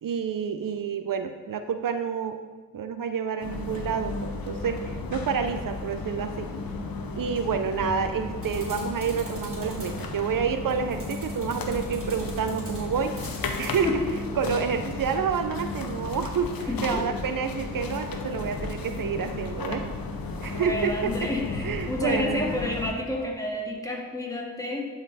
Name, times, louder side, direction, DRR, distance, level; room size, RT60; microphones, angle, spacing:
voice 1, 0.0-2.4 2.7-6.5 7.1-13.1 13.6-13.9 14.4-19.9 20.4-21.3 21.6-22.4, right 6 dB, 70° right, 8 dB, 0.5 m, -29 dB
sound 1, 3.4-22.9, left 3 dB, 90° left, 0.8 m, -34 dB
sound 2, 8.4-13.8, right 1 dB, 40° right, 2.6 m, -44 dB
voice 2, 16.7-17.0 20.4-24.9, left 1 dB, 10° left, -1 dB, 1.8 m, -30 dB
11.5 x 4.3 x 4.0 m, 1.4 s
cardioid pair, 45°, 34 cm